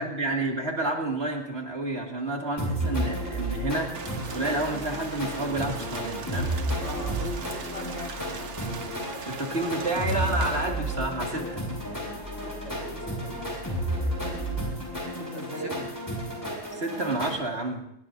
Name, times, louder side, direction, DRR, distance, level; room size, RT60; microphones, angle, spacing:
voice 1, 0.0-4.0 4.3-6.5 9.3-11.6 16.7-17.8, right 2 dB, 65° right, 1 dB, 2.5 m, -30 dB
sound 1, 2.6-17.3, right 1 dB, 15° left, 5.5 m, -32 dB
sound 2, 3.4-15.1, left 4 dB, 50° left, 1.2 m, -46 dB
Rain, 3.9-10.7, right 6 dB, 80° right, 1.3 m, -40 dB
voice 2, 6.8-8.2 12.4-13.4 15.1-15.9, left 1 dB, 80° left, -1 dB, 3.2 m, -40 dB
25.5 x 20.0 x 2.7 m, 0.74 s
omnidirectional pair, 1.2 m